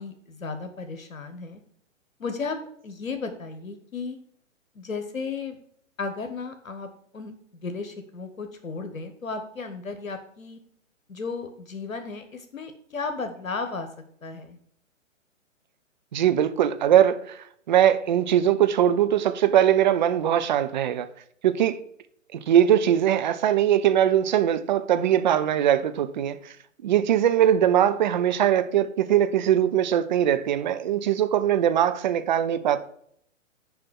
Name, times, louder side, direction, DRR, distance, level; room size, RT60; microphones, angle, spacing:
voice 1, 0.0-1.6 2.2-2.6 2.8-4.2 4.7-5.6 6.0-6.9 7.1-7.3 7.6-10.6 11.1-13.9 14.2-14.6, left 4 dB, 85° left, 1.1 m, -34 dB
voice 2, 16.1-17.4 17.7-21.1 21.4-21.8 22.3-26.5 26.8-32.8, right 10 dB, 35° right, 0.6 m, -21 dB
6.9 x 5.1 x 6.2 m
figure-of-eight pair, 125°, 40 cm